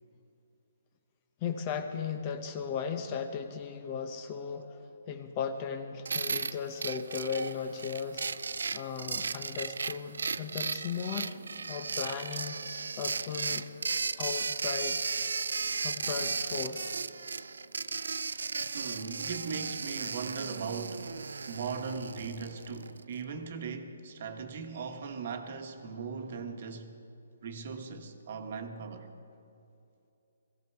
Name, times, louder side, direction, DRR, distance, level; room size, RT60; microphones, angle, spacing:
voice 1, 1.4-11.4 11.7-13.7 14.2-15.0 15.8-17.0, left 6 dB, 25° left, 0.8 m, -37 dB
sound 1, 6.0-23.0, right 4 dB, 85° right, 0.4 m, -35 dB
voice 2, 18.7-21.1 21.5-27.0 27.4-29.1, right 5 dB, 50° right, 1.3 m, -39 dB
17.5 x 16.0 x 4.7 m
hypercardioid pair, 160°, 0 cm